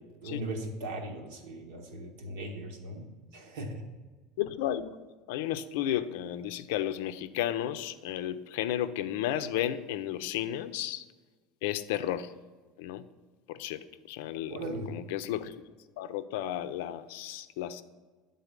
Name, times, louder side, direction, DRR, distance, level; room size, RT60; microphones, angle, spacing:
voice 1, 0.2-3.0 3.3-3.8 14.5-14.9, right 1 dB, 80° right, 2 dB, 1.3 m, -38 dB
voice 2, 4.4-4.9 5.3-11.0 11.6-12.3 12.8-13.0 13.5-14.6 14.9-15.6 16.0-17.8, left 12 dB, 80° left, 12 dB, 0.4 m, -33 dB
8.2 x 3.9 x 5.1 m, 1.4 s
cardioid pair, 150°, 0 cm